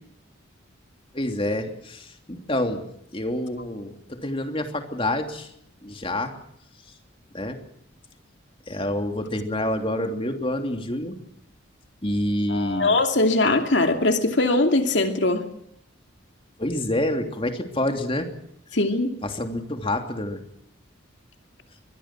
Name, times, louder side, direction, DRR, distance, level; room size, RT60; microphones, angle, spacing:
voice 1, 1.1-2.9 3.1-5.5 5.8-6.3 7.3-7.6 8.7-11.2 12.0-12.9 16.6-18.3 19.2-20.4, left 1 dB, 30° left, 5 dB, 3.1 m, -27 dB
voice 2, 12.5-15.4 18.7-19.1, left 2 dB, 65° left, 5 dB, 2.5 m, -21 dB
25.0 x 22.0 x 6.2 m, 0.74 s
head